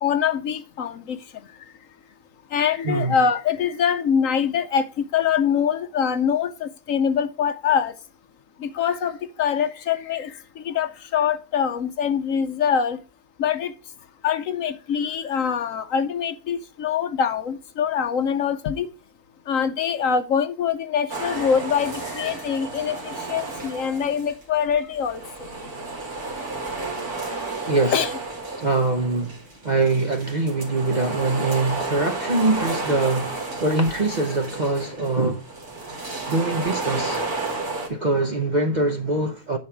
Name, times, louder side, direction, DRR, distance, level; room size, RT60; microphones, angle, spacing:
voice 1, 0.0-1.2 2.5-7.9 8.6-13.0 13.4-13.7 14.2-18.9 19.5-25.2 27.9-28.1, left 7 dB, 65° left, 1.0 m, -24 dB
voice 2, 2.8-3.2 27.7-28.0 28.6-35.4 36.3-37.2 37.9-39.6, right 2 dB, 40° right, 0.7 m, -23 dB
sound 1, 21.1-24.4 24.7-37.9, right 3 dB, 65° right, 2.9 m, -32 dB
10.5 x 4.7 x 4.5 m
omnidirectional pair, 1.7 m